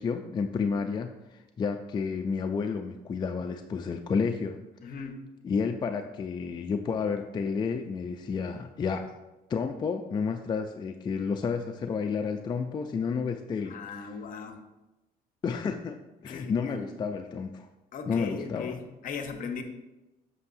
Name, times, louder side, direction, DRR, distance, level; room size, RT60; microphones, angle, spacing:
voice 1, 0.0-4.6 4.8-5.0 5.4-9.1 9.5-14.1 15.4-17.7 18.1-18.8, left 5 dB, 25° left, 5 dB, 0.3 m, -31 dB
voice 2, 4.8-5.2 13.7-14.6 16.2-16.9 17.9-19.6, left 5 dB, 55° left, 6 dB, 0.9 m, -38 dB
8.1 x 5.5 x 2.6 m, 1.1 s
cardioid pair, 110°, 17 cm